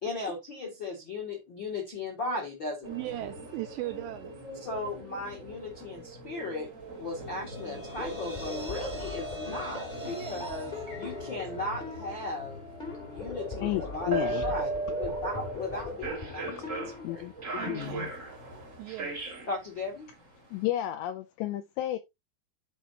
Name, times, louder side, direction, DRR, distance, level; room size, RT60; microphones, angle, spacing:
voice 1, 0.0-3.0 4.6-6.7 7.0-12.6 13.0-14.7 15.0-17.3 17.8-17.9 19.5-20.1, left 2 dB, 60° left, 1.2 m, -37 dB
sound 1, 2.8-20.6, right 3 dB, 50° right, 0.9 m, -40 dB
voice 2, 2.9-4.4 10.0-10.4 17.6-18.1 18.8-19.2, right 16 dB, 85° right, 2.5 m, -38 dB
sound 2, 7.0-19.4, left 1 dB, 20° right, 0.8 m, -46 dB
sound 3, 7.5-17.9, left 2 dB, 35° left, 0.7 m, -40 dB
voice 3, 13.6-14.5 16.5-16.7 17.0-18.1 20.5-22.0, left 14 dB, 85° left, 2.5 m, -32 dB
13.0 x 4.6 x 2.8 m
omnidirectional pair, 5.6 m